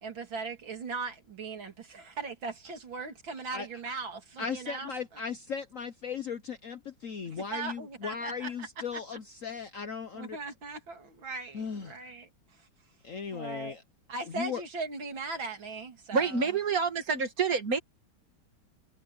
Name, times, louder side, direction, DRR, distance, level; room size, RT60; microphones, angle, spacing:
voice 1, 0.0-5.2 7.3-8.7 10.1-12.7 13.3-13.8 14.1-16.5, right 4 dB, 70° right, 3.4 m, -39 dB
voice 2, 4.4-10.4 11.5-12.0 13.0-13.8 14.3-14.6, left 6 dB, 55° left, 1.0 m, -37 dB
voice 3, 16.1-17.8, right 5 dB, 45° right, 2.3 m, -27 dB
omnidirectional pair, 2.2 m